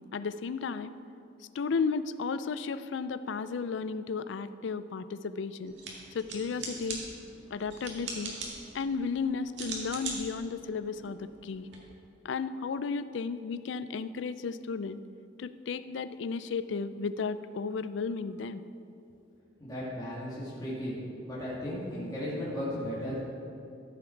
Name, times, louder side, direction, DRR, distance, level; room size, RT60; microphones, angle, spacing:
voice 1, 0.1-1.0 1.5-5.7 6.1-7.0 7.5-8.4 8.7-11.7 12.2-15.0 15.4-18.6, left 5 dB, 65° left, 13 dB, 0.4 m, -34 dB
sound 1, 5.7-11.8, right 3 dB, 65° right, 2.0 m, -42 dB
voice 2, 19.6-21.0 21.3-23.2, equal, 20° left, -9 dB, 2.3 m, -35 dB
14.0 x 7.1 x 4.5 m, 2.7 s
head